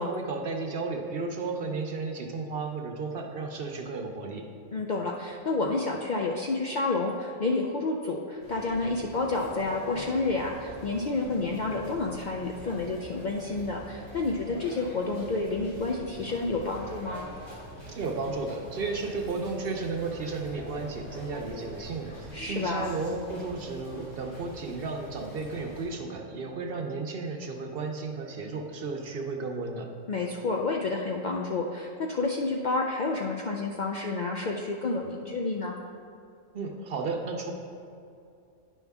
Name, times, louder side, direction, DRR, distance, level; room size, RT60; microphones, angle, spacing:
voice 1, 0.0-4.4 17.9-29.9 36.5-37.5, right 3 dB, 55° right, 3 dB, 0.8 m, -33 dB
voice 2, 4.7-17.3 22.3-22.9 30.1-35.7, left 3 dB, 60° left, 0 dB, 0.5 m, -30 dB
sound 1, 8.4-25.9, equal, 80° left, 2.3 m, -44 dB
10.0 x 5.4 x 3.5 m, 2.6 s
omnidirectional pair, 1.3 m